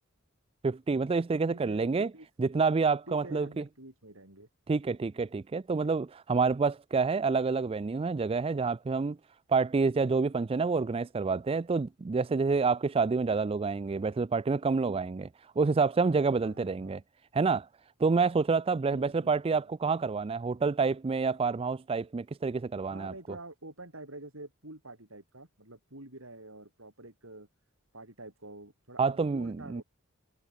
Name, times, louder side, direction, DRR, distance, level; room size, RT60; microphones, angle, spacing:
voice 1, 0.6-2.1 2.4-3.6 4.7-9.2 9.5-17.0 17.3-17.7 18.0-23.1 29.0-29.8, right 4 dB, 25° right, 0.3 m, -28 dB
voice 2, 1.3-2.3 3.1-4.5 16.4-16.9 18.9-19.6 22.8-27.5 27.9-29.8, right 2 dB, 65° right, 7.6 m, -47 dB
head